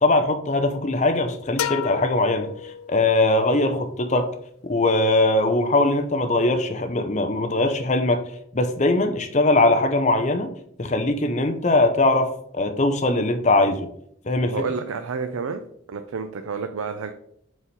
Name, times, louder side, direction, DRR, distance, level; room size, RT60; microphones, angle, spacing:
voice 1, 0.0-4.3 4.6-8.2 8.5-10.5 10.8-13.9 14.2-14.5, left 2 dB, 35° left, 6 dB, 0.6 m, -21 dB
sound 1, 1.6-3.3, left 9 dB, 90° left, 0.4 m, -31 dB
voice 2, 14.4-15.6 15.9-17.1, right 5 dB, 90° right, 8 dB, 0.5 m, -29 dB
4.7 x 4.2 x 5.2 m, 0.69 s
head